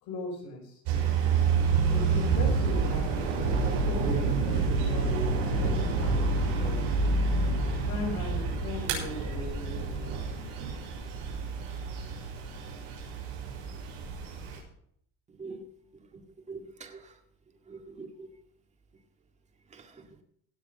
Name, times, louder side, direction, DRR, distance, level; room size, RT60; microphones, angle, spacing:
voice 1, 0.0-0.8 1.9-5.2 5.6-6.8 7.9-10.5, left 3 dB, 65° left, 0 dB, 4.7 m, -39 dB
sound 1, 0.9-14.6, right 4 dB, 85° right, 6.5 m, -28 dB
voice 2, 16.5-17.1 17.7-18.3 19.7-20.2, right 4 dB, 25° right, 4 dB, 2.1 m, -44 dB
18.0 x 6.9 x 5.4 m, 0.67 s
cardioid pair, 130°, 30 cm